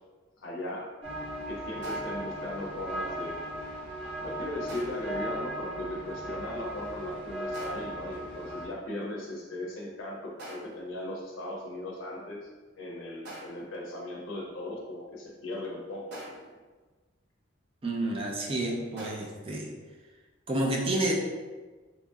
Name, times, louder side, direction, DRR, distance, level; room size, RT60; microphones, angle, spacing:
voice 1, 0.4-0.9 1.5-3.5 4.2-12.4 12.8-16.2, left 1 dB, 85° left, -2 dB, 0.5 m, -38 dB
sound 1, 1.0-8.7, equal, 85° right, 1.2 m, -37 dB
sound 2, 1.8-2.3 4.7-5.2 7.5-8.0 10.4-10.9 13.2-13.8 16.1-16.6 19.0-19.2, right 1 dB, 55° right, 0.7 m, -44 dB
voice 2, 17.8-19.7 20.5-21.1, right 1 dB, 30° right, -1 dB, 0.4 m, -29 dB
2.9 x 2.6 x 2.3 m, 1.3 s
head